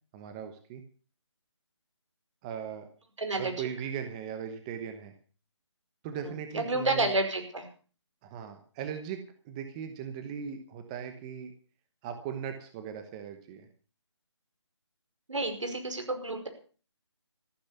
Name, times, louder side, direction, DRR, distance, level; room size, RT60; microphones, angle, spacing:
voice 1, 0.1-0.8 2.4-2.9 3.4-5.1 6.0-7.1 8.2-9.2 9.4-11.5 12.0-13.7, right 8 dB, 15° right, 7 dB, 1.0 m, -38 dB
voice 2, 3.2-3.7 6.5-7.7 15.3-16.5, right 2 dB, 80° right, 6 dB, 5.4 m, -30 dB
14.5 x 11.5 x 6.9 m, 0.40 s
figure-of-eight pair, 165°, 16 cm